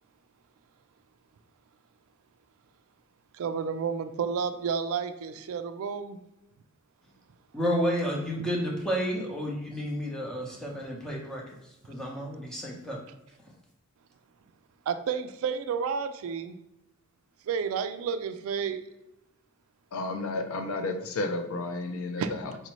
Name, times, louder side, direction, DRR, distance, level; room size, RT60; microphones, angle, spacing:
voice 1, 3.3-6.2 14.9-16.6 17.5-18.8 22.2-22.3, right 6 dB, 65° right, 9 dB, 0.3 m, -31 dB
voice 2, 7.5-11.4 11.9-13.0, equal, 5° left, -3 dB, 0.7 m, -31 dB
voice 3, 19.9-22.6, left 2 dB, 70° left, 5 dB, 0.5 m, -32 dB
4.2 x 2.6 x 3.0 m, 0.88 s
head